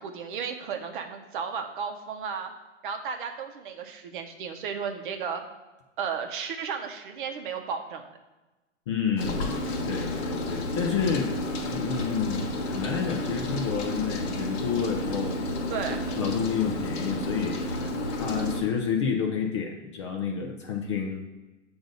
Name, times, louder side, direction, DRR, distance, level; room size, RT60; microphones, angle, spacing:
voice 1, 0.0-2.5 2.8-5.4 6.0-8.0 15.7-16.0, right 6 dB, 45° right, 5 dB, 0.8 m, -34 dB
voice 2, 8.9-9.5 9.8-11.3 11.7-12.4 12.7-15.4 16.2-21.3, left 6 dB, 25° left, 2 dB, 0.4 m, -29 dB
Rain, 9.2-18.6, left 1 dB, 60° left, 1.3 m, -31 dB
7.7 x 2.6 x 5.1 m, 1.1 s
hypercardioid pair, 130°, 37 cm